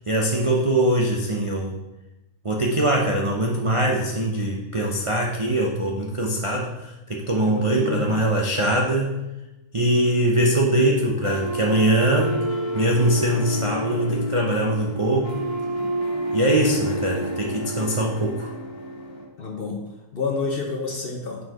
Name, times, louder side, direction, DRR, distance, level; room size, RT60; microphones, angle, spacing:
voice 1, 0.1-1.7 2.4-9.2 9.7-12.3 12.7-15.5 16.3-18.5, right 1 dB, 40° right, -2 dB, 0.4 m, -22 dB
voice 2, 7.4-8.2 15.8-16.1 19.4-19.8 20.1-21.4, left 4 dB, 45° left, 1 dB, 0.9 m, -29 dB
sound 1, 11.2-19.2, right 1 dB, 70° left, 1.9 m, -29 dB
6.4 x 4.8 x 4.8 m, 0.99 s
omnidirectional pair, 1.7 m